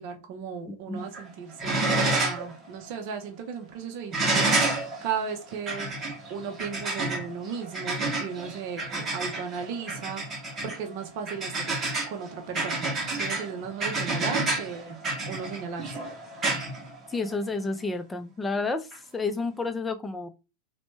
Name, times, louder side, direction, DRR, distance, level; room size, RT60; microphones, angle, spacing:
voice 1, 0.0-4.5 5.0-5.9 6.3-10.2 10.6-11.8 12.1-15.0 15.3-16.0, right 6 dB, 50° right, 0.6 m, -35 dB
voice 2, 0.7-1.1 17.1-18.9 19.1-20.3, left 3 dB, 10° left, 0.5 m, -30 dB
sound 1, 1.0-1.3 1.6-2.5 2.8-2.9 4.1-17.5 18.9-19.0, right 2 dB, 25° right, 0.9 m, -29 dB
3.0 x 2.1 x 3.2 m
figure-of-eight pair, 90°, 0 cm